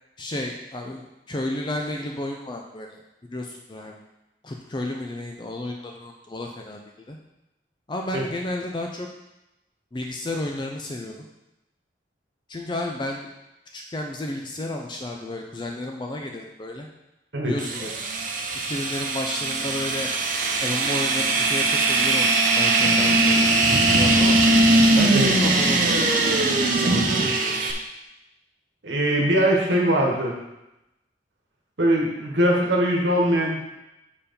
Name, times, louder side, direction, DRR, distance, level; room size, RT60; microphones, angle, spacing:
voice 1, 0.2-3.0 3.3-4.0 4.4-6.8 7.1-7.2 7.9-9.1 9.9-11.2 12.5-13.3 13.7-16.9 17.4-17.9 18.7-20.1 20.6-24.4 24.9-27.7, left 1 dB, 25° left, 2 dB, 0.5 m, -32 dB
sound 1, 17.6-27.7, right 2 dB, 50° right, 0.8 m, -20 dB
voice 2, 28.8-30.3 31.8-33.6, right 1 dB, 90° right, -2 dB, 1.2 m, -21 dB
7.1 x 4.6 x 5.2 m, 0.93 s
head